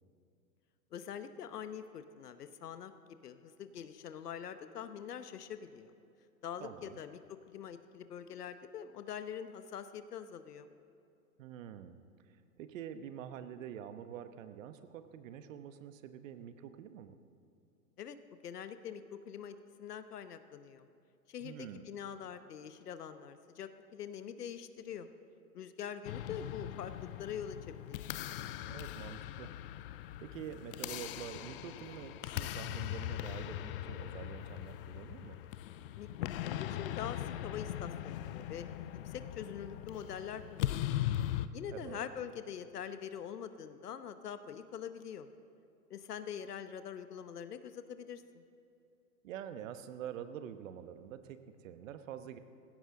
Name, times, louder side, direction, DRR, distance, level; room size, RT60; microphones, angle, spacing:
voice 1, 0.9-2.9 3.2-5.9 6.4-10.7 18.0-18.2 18.4-20.9 21.3-25.1 25.5-28.1 36.0-36.1 36.4-38.7 39.0-41.0 41.5-45.3 45.9-48.4, left 8 dB, 70° left, 11 dB, 1.0 m, -44 dB
voice 2, 6.6-7.0 11.4-12.0 12.6-17.2 21.4-21.9 28.7-29.5 30.2-35.4 41.7-42.0 49.2-52.4, right 9 dB, 55° right, 10 dB, 1.1 m, -46 dB
sound 1, 26.1-41.5, left 13 dB, 35° left, 0.5 m, -40 dB
19.5 x 16.0 x 3.8 m, 2.6 s
hypercardioid pair, 110°, 48 cm